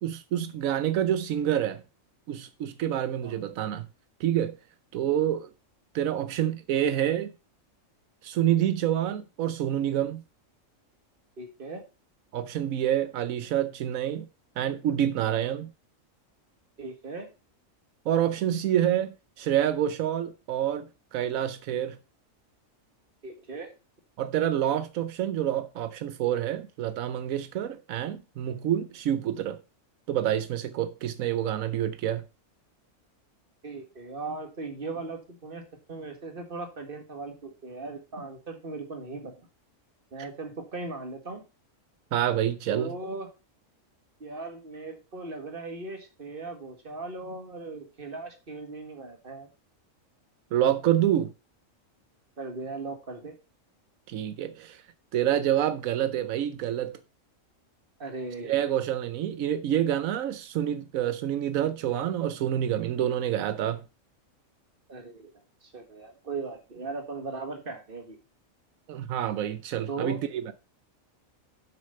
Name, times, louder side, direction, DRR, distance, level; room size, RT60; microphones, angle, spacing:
voice 1, 0.0-1.8 2.3-3.9 4.2-4.6 4.9-5.5 5.9-7.3 8.2-10.2 12.3-14.2 14.6-15.7 18.1-20.9 21.1-22.0 24.2-29.6 30.1-32.2 40.2-40.3 42.1-42.9 50.5-51.3 54.1-54.8 55.1-57.0 58.4-63.8 68.9-70.2 70.5-70.6, right 11 dB, 85° right, 1.1 m, -27 dB
voice 2, 11.4-11.8 16.8-17.3 23.2-23.7 33.6-39.3 40.1-41.4 42.7-43.3 44.2-49.5 52.4-53.3 58.0-58.7 64.9-65.3 65.6-68.2 69.9-70.2, right 3 dB, 40° right, 2.0 m, -38 dB
7.6 x 6.3 x 5.4 m
omnidirectional pair, 1.4 m